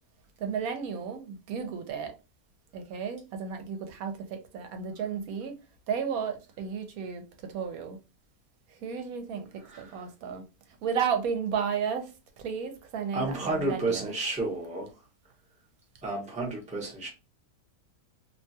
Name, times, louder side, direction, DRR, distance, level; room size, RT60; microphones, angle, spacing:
voice 1, 0.4-2.1 2.7-5.5 5.9-8.0 8.8-10.5 10.8-12.1 12.4-14.1, right 6 dB, 75° right, 1.1 m, -33 dB
voice 2, 9.7-10.1 13.1-14.9 16.0-17.1, right 2 dB, 5° right, 0.6 m, -31 dB
2.8 x 2.3 x 2.6 m
omnidirectional pair, 1.6 m